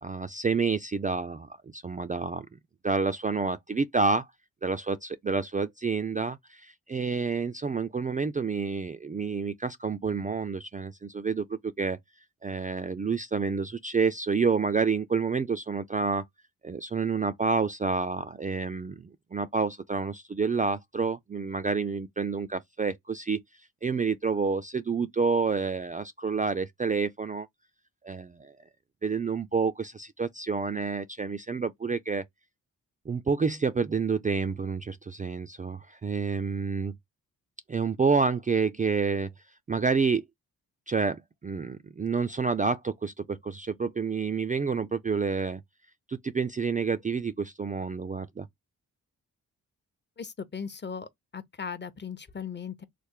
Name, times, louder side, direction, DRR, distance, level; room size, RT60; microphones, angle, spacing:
voice 1, 0.0-2.6 2.8-4.3 4.6-12.0 12.4-16.2 16.6-23.4 23.8-27.5 28.0-28.5 29.0-32.2 33.1-37.0 37.7-39.3 39.7-40.2 40.9-45.6 46.1-48.5, right 5 dB, 25° right, 0.4 m, -29 dB
voice 2, 50.2-52.8, left 6 dB, 30° left, 0.7 m, -38 dB
3.2 x 2.1 x 3.5 m
cardioid pair, 55°, 36 cm